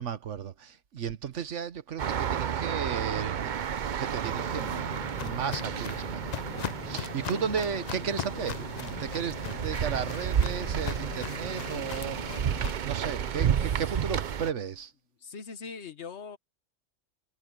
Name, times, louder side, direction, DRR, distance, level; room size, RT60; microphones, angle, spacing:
voice 1, 0.0-3.7 4.0-12.4 12.7-14.9, right 7 dB, 70° right, 1.3 m, -35 dB
sound 1, 2.0-14.5, right 8 dB, 50° right, 0.6 m, -32 dB
Walk footsteps, 4.2-12.7, left 9 dB, 75° left, 0.3 m, -39 dB
voice 2, 15.2-16.4, left 5 dB, 60° left, 1.3 m, -41 dB
omnidirectional pair, 1.3 m